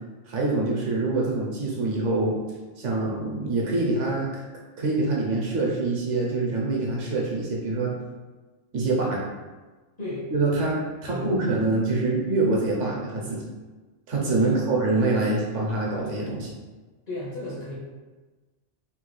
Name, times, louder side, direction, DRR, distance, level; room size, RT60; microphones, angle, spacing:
voice 1, 0.3-2.4 2.8-4.4 4.8-7.9 8.7-9.2 10.3-10.7 11.0-13.4 14.1-16.5, right 2 dB, 75° right, -3 dB, 1.1 m, -25 dB
voice 2, 10.0-10.3 11.1-11.4 14.4-14.6 17.1-17.7, left 2 dB, 45° left, -7 dB, 0.6 m, -34 dB
3.1 x 2.3 x 3.0 m, 1.3 s
omnidirectional pair, 1.2 m